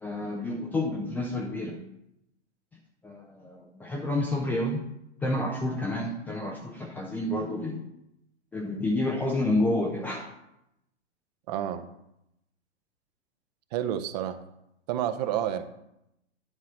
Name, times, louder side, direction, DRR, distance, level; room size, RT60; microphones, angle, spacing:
voice 1, 0.0-1.8 3.0-4.8 5.2-7.8 8.5-10.3, left 1 dB, 5° left, -1 dB, 0.4 m, -29 dB
voice 2, 11.5-11.9 13.7-14.4 14.9-15.6, right 10 dB, 35° right, 10 dB, 0.6 m, -29 dB
10.0 x 4.1 x 6.0 m, 0.83 s
figure-of-eight pair, 110°, 35 cm